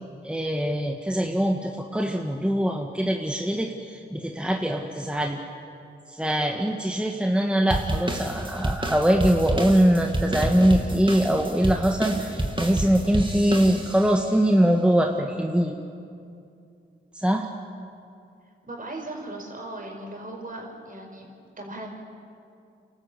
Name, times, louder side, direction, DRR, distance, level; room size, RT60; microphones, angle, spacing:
voice 1, 0.2-5.4 6.1-15.8 17.1-17.5, right 1 dB, 5° right, 2 dB, 1.7 m, -23 dB
sound 1, 7.7-14.2, right 1 dB, 25° right, 2.7 m, -29 dB
voice 2, 18.7-21.3 21.6-21.9, right 2 dB, 45° right, 1 dB, 5.4 m, -37 dB
28.5 x 13.0 x 8.3 m, 2.5 s
cardioid pair, 50°, 20 cm